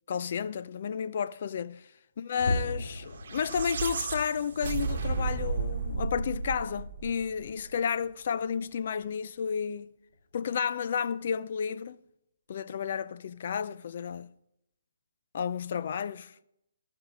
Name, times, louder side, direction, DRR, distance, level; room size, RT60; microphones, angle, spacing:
voice 1, 0.1-9.9 10.3-12.0 12.5-14.3 15.3-16.3, left 7 dB, 50° left, 0.4 m, -32 dB
sound 1, 2.4-9.0 9.4-9.7 10.1-10.2 10.8-10.9, left 1 dB, 75° left, 1.8 m, -40 dB
sound 2, 3.1-7.5, right 4 dB, 55° right, 1.1 m, -33 dB
15.0 x 5.5 x 4.9 m
hypercardioid pair, 155°, 0 cm